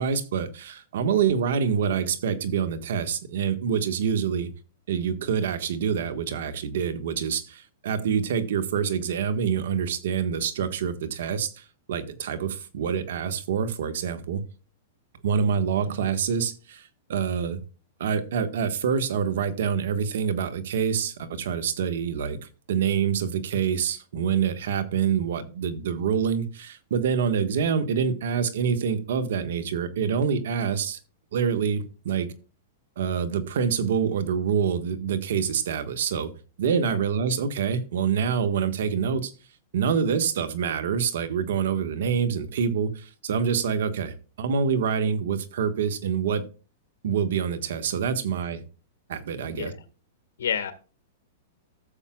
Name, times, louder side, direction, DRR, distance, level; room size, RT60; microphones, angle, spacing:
voice 1, 0.0-4.5 4.9-14.4 15.2-17.6 18.0-22.4 22.7-31.0 31.3-32.3 33.0-36.3 36.6-39.3 39.7-46.4 47.0-48.6 49.1-49.7, right 7 dB, 70° right, 1.5 m, -26 dB
voice 2, 49.5-49.8 50.4-50.7, left 8 dB, 80° left, 1.8 m, -29 dB
15.0 x 7.3 x 2.4 m
hypercardioid pair, 135°, 0 cm